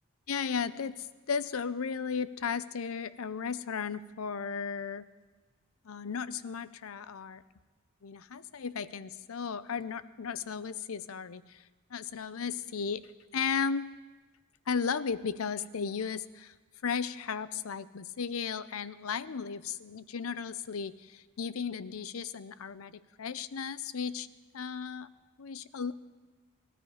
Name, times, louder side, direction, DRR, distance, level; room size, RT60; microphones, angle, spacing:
voice 1, 0.3-5.0 5.8-7.4 8.0-11.4 11.9-13.0 13.3-13.9 14.7-16.5 16.8-24.3 24.5-25.1 25.4-25.9, left 6 dB, 85° left, 15 dB, 0.6 m, -35 dB
20.0 x 13.5 x 4.9 m, 1.3 s
head